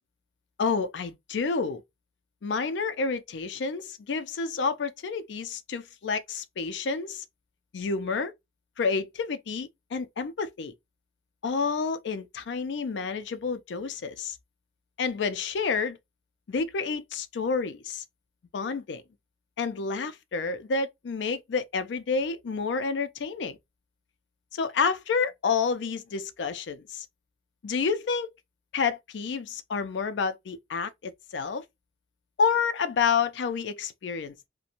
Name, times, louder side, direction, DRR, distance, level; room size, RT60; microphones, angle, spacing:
voice 1, 0.6-1.8 2.4-7.2 7.7-8.3 8.8-10.7 11.4-14.4 15.0-16.0 16.5-18.0 18.5-19.0 19.6-23.6 24.5-27.1 27.6-28.3 28.7-31.6 32.4-34.5, left 5 dB, 90° left, 0.4 m, -29 dB
2.5 x 2.1 x 2.8 m
head